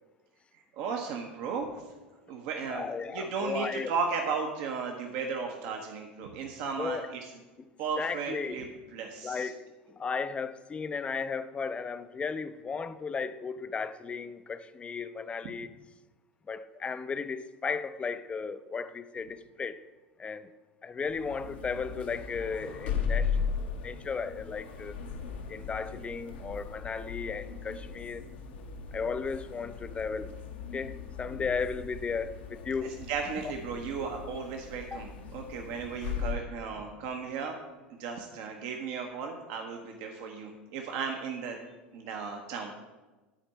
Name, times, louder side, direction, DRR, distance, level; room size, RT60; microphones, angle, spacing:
voice 1, 0.7-1.8 2.3-7.3 7.8-9.5 32.8-37.6 37.9-41.6 41.9-42.8, right 5 dB, 55° right, 0.9 m, -35 dB
voice 2, 2.7-3.9 6.8-7.0 8.0-8.6 9.2-9.6 10.0-15.7 16.5-19.8 20.2-20.5 20.8-23.3 23.6-24.9 25.5-28.2 28.9-30.3 30.7-33.0 34.9-35.0, left 5 dB, 20° left, 0.4 m, -35 dB
sound 1, 21.1-36.4, left 6 dB, 65° left, 0.9 m, -37 dB
10.0 x 4.4 x 5.6 m
figure-of-eight pair, 75°, 6 cm